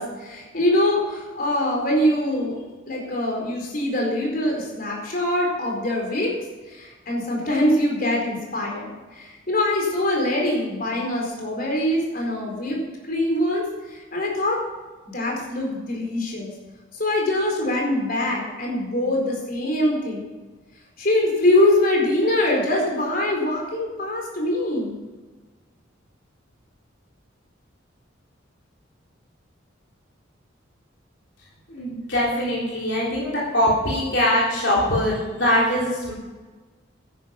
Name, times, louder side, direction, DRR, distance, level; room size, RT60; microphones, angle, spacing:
voice 1, 0.0-2.6 2.9-6.3 6.7-14.6 15.1-16.5 17.0-20.2 21.0-24.9, left 1 dB, 45° left, -1 dB, 4.4 m, -23 dB
voice 2, 31.7-36.1, left 1 dB, 65° left, -6 dB, 3.6 m, -22 dB
13.0 x 10.5 x 5.9 m, 1.3 s
head